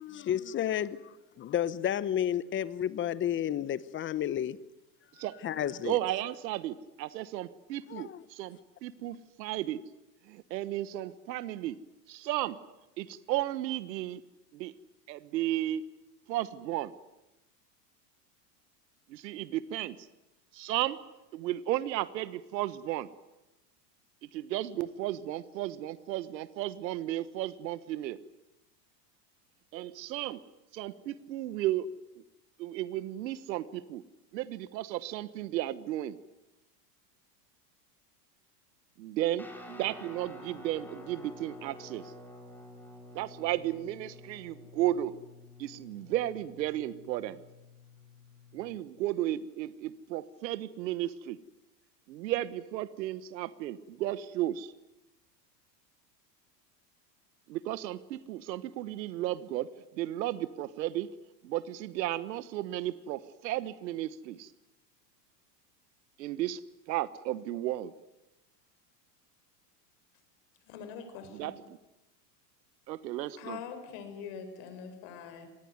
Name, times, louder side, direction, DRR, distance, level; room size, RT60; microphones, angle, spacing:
voice 1, 0.0-4.6 5.4-6.0 7.9-8.2, left 10 dB, 25° left, 0.9 m, -31 dB
voice 2, 5.2-9.8 10.2-11.8 12.1-12.6 13.0-14.2 14.5-14.7 15.1-15.8 16.3-16.9 19.1-20.1 20.5-21.0 21.3-23.1 24.2-28.2 29.7-30.4 30.7-31.9 32.1-32.2 32.6-34.0 34.3-36.2 39.0-42.1 43.1-45.2 45.6-47.4 48.5-51.4 52.1-54.7 57.5-61.1 61.4-64.5 66.2-66.6 66.9-67.9 71.3-71.8 72.9-73.6, right 14 dB, 85° right, 1.3 m, -34 dB
Guitar, 39.4-48.8, left 1 dB, 5° left, 4.4 m, -50 dB
voice 3, 70.6-71.6 73.4-75.5, left 7 dB, 55° left, 5.7 m, -43 dB
26.0 x 19.5 x 9.5 m
supercardioid pair, 135°, 49 cm